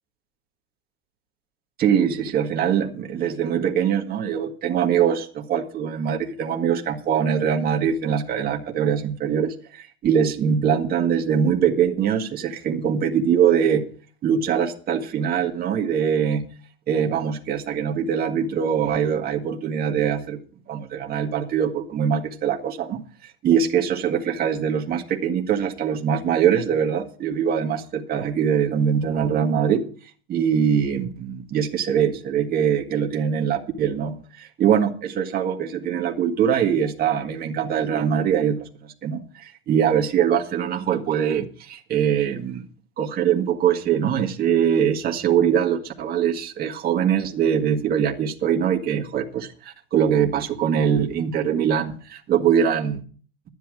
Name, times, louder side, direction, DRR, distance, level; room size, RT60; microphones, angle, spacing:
voice 1, 1.8-13.8 14.2-16.4 16.9-20.4 20.7-29.9 30.3-42.7 43.0-53.0, right 8 dB, 30° right, 1 dB, 1.9 m, -22 dB
13.0 x 10.0 x 4.9 m, 0.41 s
supercardioid pair, 135°, 33 cm